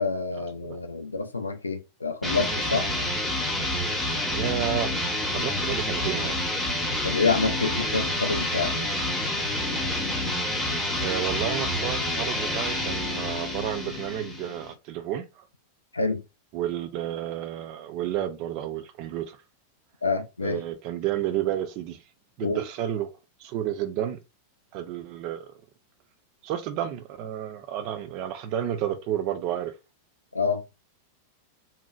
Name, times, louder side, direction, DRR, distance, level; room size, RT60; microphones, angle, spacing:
voice 1, 0.0-2.9 7.0-8.8 15.9-16.2 20.0-20.6 22.4-22.6 30.3-30.6, left 4 dB, 80° left, 0.3 m, -27 dB
sound 1, 2.2-14.7, left 1 dB, 5° left, 0.7 m, -28 dB
voice 2, 4.3-5.0 5.3-6.4 11.0-15.5 16.5-19.4 20.4-22.0 22.4-23.1 23.4-24.2 24.7-25.5 26.4-29.7, right 11 dB, 45° right, 0.4 m, -31 dB
2.7 x 2.0 x 2.3 m
figure-of-eight pair, 90°, 0 cm